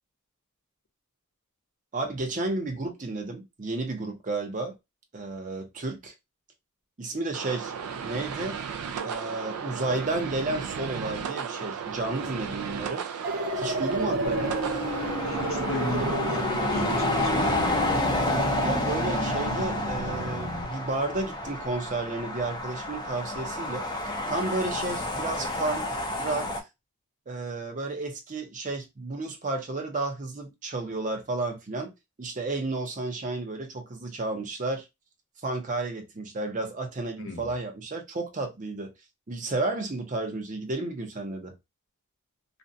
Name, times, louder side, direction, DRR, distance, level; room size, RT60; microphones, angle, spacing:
voice 1, 1.9-4.8 5.1-6.1 7.0-7.7 8.0-8.6 9.0-13.0 13.5-14.6 18.6-23.9 24.3-26.6 27.3-31.9 32.2-34.8 35.4-38.9 39.3-41.5, right 2 dB, 35° right, 0.6 m, -32 dB
sound 1, 7.3-16.1, right 6 dB, 80° right, 0.3 m, -34 dB
sound 2, 13.2-20.6, right 1 dB, 55° right, 1.0 m, -32 dB
sound 3, 14.2-26.6, left 1 dB, 20° left, 0.4 m, -30 dB
voice 2, 15.1-17.9 37.2-37.5, left 3 dB, 60° left, 0.6 m, -35 dB
2.5 x 2.2 x 2.6 m
head